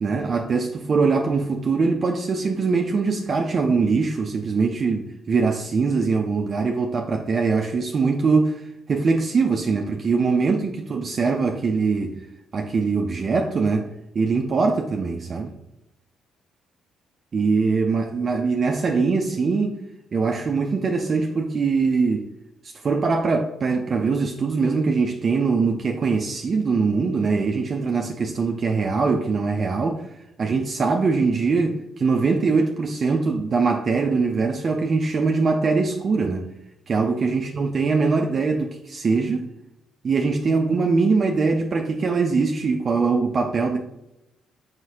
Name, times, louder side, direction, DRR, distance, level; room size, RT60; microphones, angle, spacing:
voice 1, 0.0-12.3 12.5-15.5 17.3-19.8 20.1-22.3 22.6-30.1 30.4-36.5 36.9-39.5 40.0-43.8, right 4 dB, 45° right, 0.4 m, -22 dB
4.5 x 3.1 x 2.8 m
hypercardioid pair, 50°, 0 cm